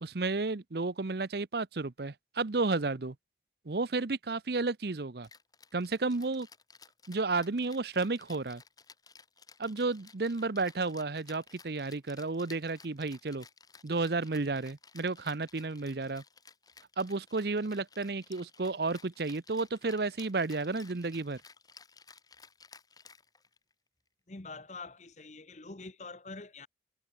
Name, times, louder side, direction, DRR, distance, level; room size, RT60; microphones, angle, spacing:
voice 1, 0.0-3.1 3.7-5.3 5.7-6.5 7.1-8.6 9.6-13.4 13.8-16.2 17.0-21.4, right 3 dB, 60° right, 0.8 m, -32 dB
Rattle (instrument), 5.2-23.7, left 5 dB, 20° left, 6.9 m, -57 dB
voice 2, 24.3-26.7, left 3 dB, 40° left, 1.1 m, -45 dB
head